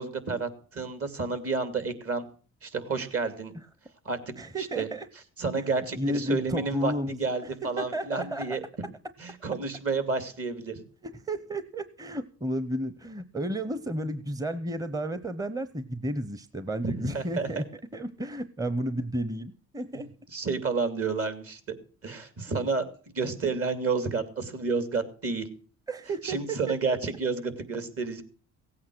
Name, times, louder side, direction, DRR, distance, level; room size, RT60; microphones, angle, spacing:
voice 1, 0.0-2.2 2.6-3.5 4.0-4.2 4.5-4.9 5.4-6.9 7.2-8.6 9.2-10.8 16.8-17.6 19.9-21.8 22.0-22.9 23.1-25.5 26.2-28.2, right 4 dB, 50° right, 11 dB, 2.8 m, -30 dB
voice 2, 4.4-5.1 5.9-7.2 7.8-8.6 11.0-17.6 17.9-20.1 25.9-26.9, right 1 dB, 10° right, 13 dB, 0.9 m, -32 dB
17.0 x 8.6 x 6.2 m, 0.40 s
cardioid pair, 90°, 30 cm